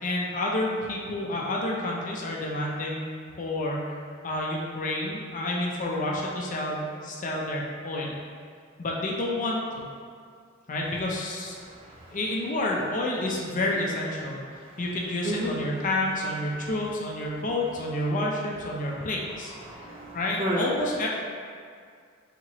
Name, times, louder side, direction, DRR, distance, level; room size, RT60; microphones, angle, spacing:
voice 1, 0.0-3.1 3.4-8.1 8.8-9.9 10.7-11.6 12.1-14.4 14.8-19.5 20.1-21.1, left 1 dB, 40° left, -2 dB, 0.5 m, -29 dB
voice 2, 11.6-12.2 14.7-14.8 15.2-15.5 18.9-19.0 19.5-20.6, equal, 25° right, -3 dB, 0.4 m, -33 dB
4.3 x 2.9 x 2.8 m, 2.2 s
head